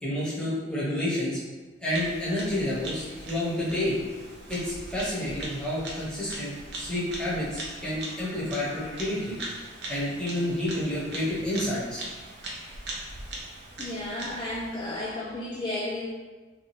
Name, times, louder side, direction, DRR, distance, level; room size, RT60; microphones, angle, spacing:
voice 1, 0.0-1.4 1.8-4.0 4.5-9.4 9.9-12.0, left 1 dB, 5° left, -9 dB, 0.8 m, -29 dB
Bird vocalization bird call bird song, 1.9-15.1, right 1 dB, 60° right, 0.5 m, -40 dB
voice 2, 13.8-16.1, left 1 dB, 20° left, -7 dB, 0.3 m, -33 dB
2.7 x 2.3 x 3.0 m, 1.3 s
head